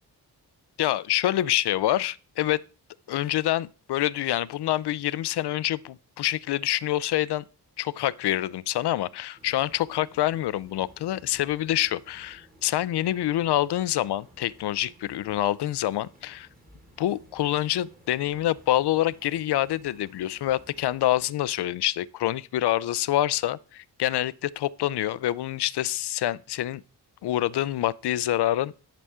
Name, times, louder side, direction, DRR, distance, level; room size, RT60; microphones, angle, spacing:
voice 1, 0.8-2.6 3.1-7.4 7.8-16.5 17.0-26.8 27.2-28.7, left 13 dB, 75° left, 0.5 m, -26 dB
sound 1, 9.4-21.3, equal, 20° right, 1.9 m, -56 dB
11.5 x 6.8 x 3.6 m
wide cardioid pair, 145°, 40 cm